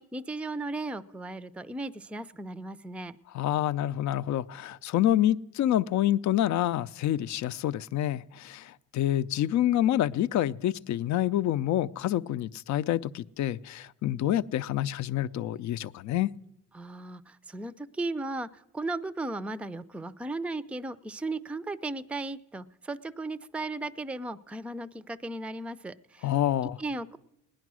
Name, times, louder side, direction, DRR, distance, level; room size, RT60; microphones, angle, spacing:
voice 1, 0.0-3.2 16.7-26.3 26.8-27.2, right 2 dB, 5° right, 0.4 m, -36 dB
voice 2, 3.3-16.3 26.2-26.8, left 12 dB, 70° left, 0.5 m, -27 dB
17.5 x 10.5 x 6.2 m
cardioid pair, 90°, 30 cm